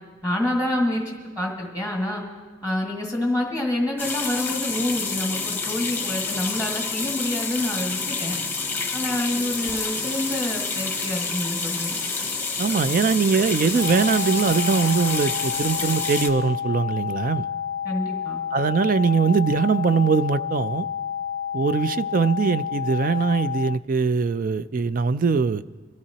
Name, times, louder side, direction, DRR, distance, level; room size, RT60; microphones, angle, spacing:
voice 1, 0.2-2.2 2.6-8.4 8.9-12.0 17.8-18.4, left 1 dB, 10° right, -2 dB, 1.7 m, -27 dB
sound 1, 4.0-16.3, left 4 dB, 10° left, 0.9 m, -28 dB
Water / Water tap faucet / Sink (filling or washing), 9.5-16.3, equal, 25° right, 2.2 m, -38 dB
voice 2, 12.6-17.5 18.5-20.9 21.5-25.6, right 5 dB, 45° right, 15 dB, 0.4 m, -22 dB
sound 2, 13.8-23.8, left 8 dB, 80° left, 0.4 m, -30 dB
24.5 x 14.0 x 2.9 m, 1.4 s
head